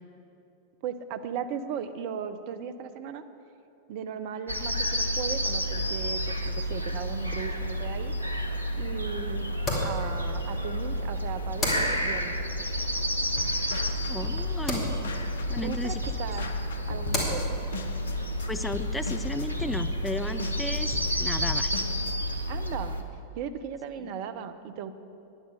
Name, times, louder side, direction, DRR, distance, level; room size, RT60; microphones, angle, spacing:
voice 1, 0.8-3.2 3.9-8.1 8.8-9.5 9.8-12.4 14.8-15.2 15.6-16.5 16.9-17.6 20.6-20.7 22.5-23.0 23.3-24.9, right 7 dB, 45° right, 10 dB, 0.6 m, -37 dB
sound 1, 4.5-23.0, equal, 90° right, 0.7 m, -30 dB
sound 2, 7.5-20.4, left 1 dB, 25° left, 2.8 m, -38 dB
sound 3, 13.4-22.2, left 5 dB, 65° left, 0.7 m, -39 dB
voice 2, 14.1-15.0 15.5-16.0 18.5-21.7 24.0-24.1, left 2 dB, 5° left, 11 dB, 0.4 m, -34 dB
10.0 x 9.6 x 6.6 m, 2.7 s
figure-of-eight pair, 90°, 0 cm